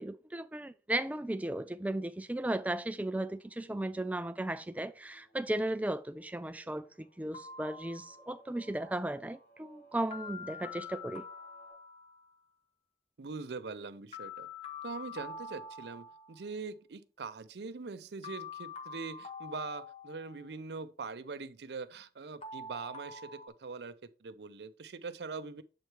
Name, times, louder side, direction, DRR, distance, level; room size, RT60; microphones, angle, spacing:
voice 1, 0.0-11.2, right 1 dB, 10° right, 0.3 m, -36 dB
sound 1, 1.4-11.7, right 2 dB, 70° left, 4.0 m, -63 dB
sound 2, 7.3-8.5 10.1-12.4 14.1-16.4 18.2-20.6 22.4-23.5, left 4 dB, 35° left, 0.6 m, -46 dB
voice 2, 13.2-14.5 14.8-25.6, right 4 dB, 70° right, 0.5 m, -42 dB
7.5 x 4.5 x 3.3 m
head